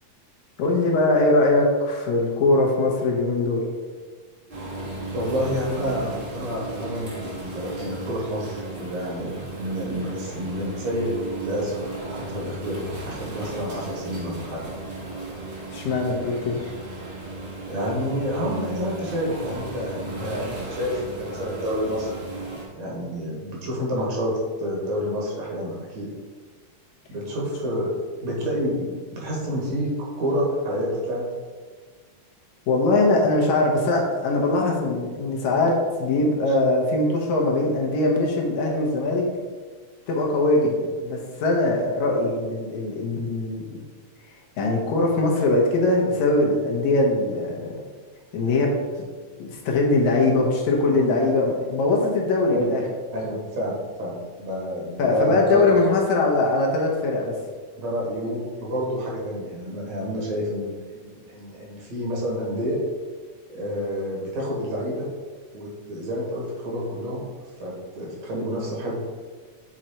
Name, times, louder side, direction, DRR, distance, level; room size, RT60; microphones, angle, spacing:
voice 1, 0.6-3.7 15.7-16.6 32.7-39.3 40.1-43.8 44.6-47.7 48.3-48.7 49.0-49.1 49.4-52.8 55.0-57.3, left 2 dB, 75° left, -1 dB, 2.3 m, -21 dB
sound 1, 4.5-22.7, right 2 dB, 35° right, 1.0 m, -35 dB
voice 2, 5.1-11.1 11.4-14.6 17.7-22.3 22.8-24.3 24.6-26.1 27.1-27.9 28.2-29.9 30.2-31.3 50.9-51.1 52.5-52.8 53.1-55.6 57.8-62.8 63.5-65.1 65.5-67.2 67.6-69.0, equal, 65° right, -3 dB, 2.9 m, -29 dB
7.6 x 3.9 x 4.3 m, 1.5 s
omnidirectional pair, 3.4 m